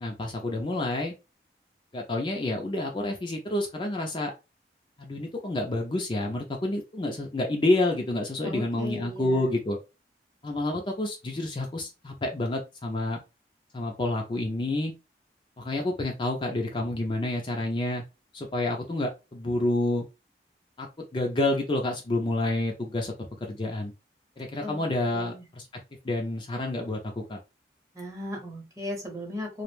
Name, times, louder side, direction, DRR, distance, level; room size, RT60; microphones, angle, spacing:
voice 1, 0.0-1.1 1.9-4.3 5.0-9.8 10.4-13.2 13.7-14.9 15.6-18.0 18.3-20.0 20.8-23.1 23.5-23.9 24.4-25.7 26.0-27.4, left 1 dB, 30° left, 1 dB, 0.4 m, -29 dB
voice 2, 8.4-9.5 24.6-25.4 27.9-29.6, left 1 dB, 20° right, 0 dB, 0.7 m, -37 dB
2.3 x 2.1 x 3.1 m, 0.27 s
head